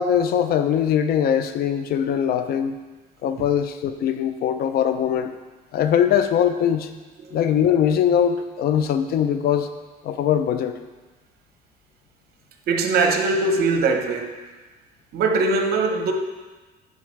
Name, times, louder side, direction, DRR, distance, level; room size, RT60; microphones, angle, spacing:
voice 1, 0.0-2.8 3.2-5.3 5.7-6.9 7.3-9.7 10.0-10.7, left 9 dB, 65° left, 9 dB, 0.6 m, -21 dB
voice 2, 12.7-14.4 15.1-16.1, right 3 dB, 70° right, 4 dB, 0.9 m, -21 dB
9.3 x 5.7 x 3.2 m, 1.3 s
cardioid pair, 110°, 17 cm